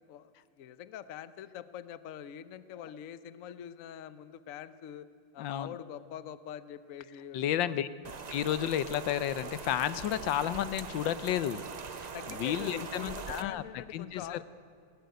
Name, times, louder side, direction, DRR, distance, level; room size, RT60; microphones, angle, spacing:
voice 1, 0.6-5.1 5.3-7.7 12.1-14.4, left 9 dB, 55° left, 14 dB, 1.0 m, -44 dB
voice 2, 5.4-5.7 7.3-7.9 8.3-11.6 11.9-14.4, left 11 dB, 80° left, 15 dB, 1.4 m, -32 dB
Rain, 8.0-13.4, right 5 dB, 80° right, 0.3 m, -42 dB
20.0 x 18.0 x 9.3 m, 2.5 s
omnidirectional pair, 2.0 m